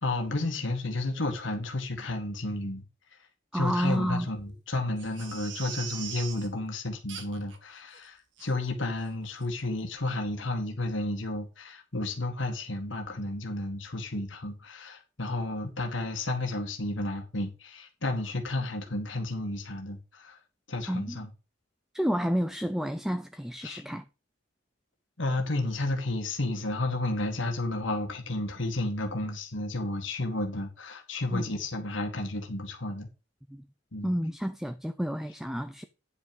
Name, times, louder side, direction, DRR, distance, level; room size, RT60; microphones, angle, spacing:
voice 1, 0.0-2.8 3.5-20.4 20.7-21.3 23.6-23.8 25.2-33.1 33.9-34.1, left 2 dB, 75° left, 2.0 m, -32 dB
voice 2, 3.5-4.3 20.9-21.2 21.9-24.0 31.3-31.4 33.5-33.6 34.0-35.8, equal, ahead, 0.5 m, -30 dB
Crying sobbing, 5.0-6.5 7.1-7.6 7.9-8.0 8.4-8.5 9.0-9.1 9.4-9.5, right 7 dB, 70° right, 1.8 m, -41 dB
9.6 x 5.8 x 5.3 m
head